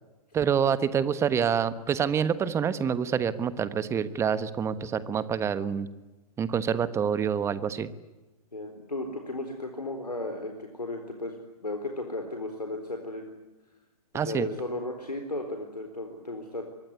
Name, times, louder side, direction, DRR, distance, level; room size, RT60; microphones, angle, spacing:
voice 1, 0.3-5.9 6.4-7.9 14.1-14.5, right 7 dB, 15° right, 14 dB, 1.3 m, -27 dB
voice 2, 8.5-11.3 11.6-13.3 14.1-16.6, left 2 dB, 85° left, 4 dB, 4.2 m, -35 dB
25.0 x 22.5 x 9.7 m, 1.1 s
figure-of-eight pair, 120°, 20 cm